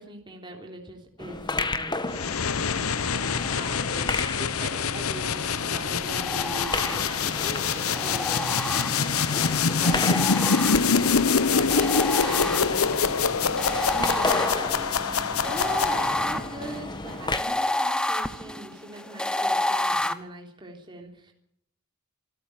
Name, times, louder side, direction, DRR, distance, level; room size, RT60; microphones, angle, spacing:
voice 1, 0.0-21.3, right 1 dB, 20° right, 1 dB, 3.4 m, -41 dB
sound 1, 1.2-17.4, left 3 dB, 20° left, 1.4 m, -33 dB
sound 2, 2.1-16.4, left 5 dB, 85° left, 0.9 m, -25 dB
sound 3, 6.1-7.3 7.9-9.3 9.8-11.2 11.7-13.0 13.6-20.1, left 1 dB, 5° left, 1.1 m, -29 dB
26.5 x 13.0 x 9.2 m, 0.71 s
head